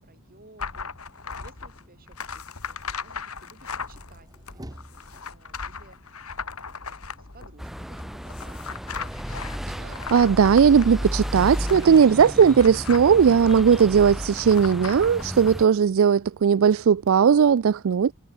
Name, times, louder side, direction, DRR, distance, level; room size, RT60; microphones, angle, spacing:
voice 1, 0.0-8.7, right 2 dB, 40° right, 6.2 m, -56 dB
sound 1, 0.6-15.5, left 5 dB, 75° left, 3.0 m, -38 dB
sound 2, 4.0-5.5 9.5-12.8, right 1 dB, 15° right, 3.1 m, -48 dB
sound 3, 7.6-15.7, equal, ahead, 0.5 m, -33 dB
voice 2, 9.8-18.1, right 7 dB, 65° right, 0.4 m, -18 dB
head